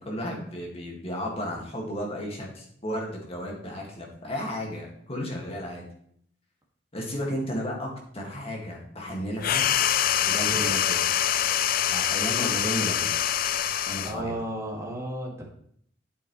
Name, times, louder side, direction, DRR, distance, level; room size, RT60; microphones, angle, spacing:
voice 1, 0.0-5.8 6.9-9.7 10.2-11.1 11.9-13.1 13.9-14.4, equal, 30° left, -1 dB, 2.1 m, -33 dB
sound 1, 9.4-14.2, left 10 dB, 50° left, 0.4 m, -25 dB
voice 2, 10.4-10.8 14.0-15.4, right 1 dB, 15° right, -3 dB, 2.2 m, -33 dB
8.5 x 8.2 x 3.3 m, 0.66 s
head